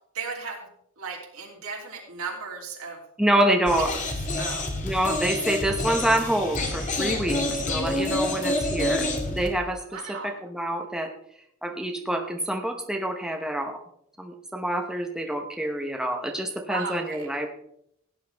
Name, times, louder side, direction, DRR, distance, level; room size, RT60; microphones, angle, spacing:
voice 1, 0.1-0.7 1.0-3.0 3.9-4.0 4.4-4.7 9.9-10.4 16.7-17.3, right 4 dB, 80° right, -1 dB, 3.1 m, -35 dB
voice 2, 3.2-3.9 4.8-11.1 11.6-13.8 14.2-17.5, right 1 dB, 5° right, 2 dB, 0.9 m, -27 dB
sound 1, 3.7-9.5, left 2 dB, 35° left, 2.0 m, -28 dB
16.5 x 10.0 x 3.4 m, 0.73 s
head